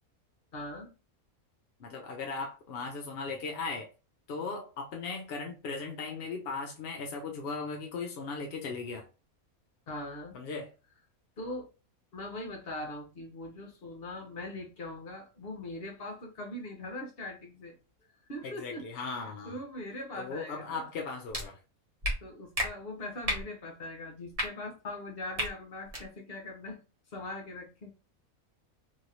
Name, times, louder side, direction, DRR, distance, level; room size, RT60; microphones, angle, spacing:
voice 1, 0.5-0.9 9.9-10.4 11.4-11.7 12.1-17.8 18.3-19.1 19.4-20.8 22.2-26.8 27.1-27.9, left 1 dB, 45° left, 1.0 m, -41 dB
voice 2, 1.8-3.9 4.3-9.0 10.3-10.7 18.4-19.5 20.2-21.6, left 4 dB, 65° left, 0.6 m, -37 dB
sound 1, 21.3-21.4 22.0-22.1 22.5-22.7 23.2-23.4 24.3-24.5 25.3-25.5 25.9-26.0, equal, 30° right, 0.7 m, -31 dB
3.1 x 2.7 x 2.6 m
omnidirectional pair, 1.5 m